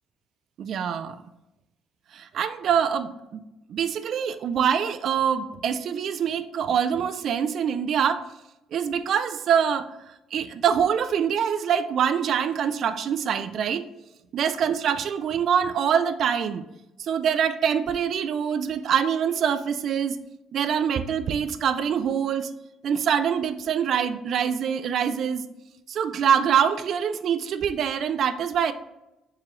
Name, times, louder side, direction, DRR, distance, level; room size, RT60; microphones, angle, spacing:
voice 1, 0.6-1.2 2.1-3.4 3.7-8.3 8.7-10.0 10.3-13.9 14.3-16.7 17.0-20.2 20.5-22.5 22.8-25.4 25.9-28.7, right 8 dB, 45° right, 12 dB, 0.3 m, -24 dB
4.6 x 3.7 x 3.0 m, 0.93 s
cardioid pair, 175°, 0 cm